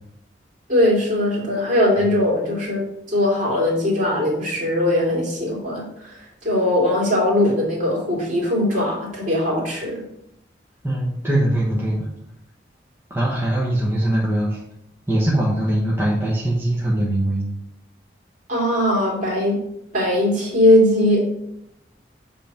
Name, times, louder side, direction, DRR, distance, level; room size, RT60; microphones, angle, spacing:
voice 1, 0.7-2.8 3.1-6.1 6.4-10.0 18.5-19.6 19.9-21.4, left 1 dB, 40° right, -4 dB, 3.0 m, -20 dB
voice 2, 10.8-12.1 13.1-14.6 15.1-17.4, right 1 dB, 10° right, -6 dB, 1.1 m, -21 dB
8.1 x 3.5 x 5.8 m, 0.80 s
head